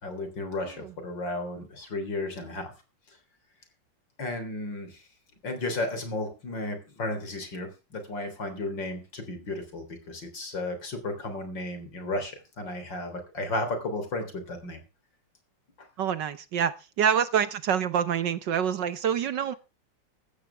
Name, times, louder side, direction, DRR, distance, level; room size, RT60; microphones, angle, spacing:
voice 1, 0.0-2.7 4.2-5.0 5.4-14.8 15.8-15.9, left 2 dB, 60° left, 7 dB, 4.2 m, -34 dB
voice 2, 16.0-19.5, right 8 dB, 65° right, 14 dB, 1.4 m, -26 dB
15.0 x 14.0 x 3.4 m, 0.29 s
omnidirectional pair, 2.3 m